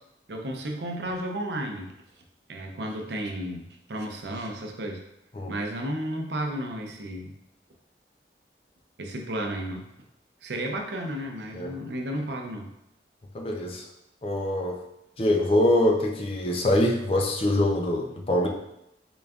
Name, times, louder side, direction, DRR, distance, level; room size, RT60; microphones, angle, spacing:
voice 1, 0.3-1.9 2.5-5.0 5.5-7.3 9.0-9.9 10.4-12.7, right 1 dB, 80° right, 2 dB, 0.6 m, -33 dB
voice 2, 13.3-13.8 14.2-14.8 15.2-18.5, left 1 dB, 30° left, 1 dB, 0.4 m, -24 dB
3.9 x 3.5 x 2.3 m, 0.84 s
head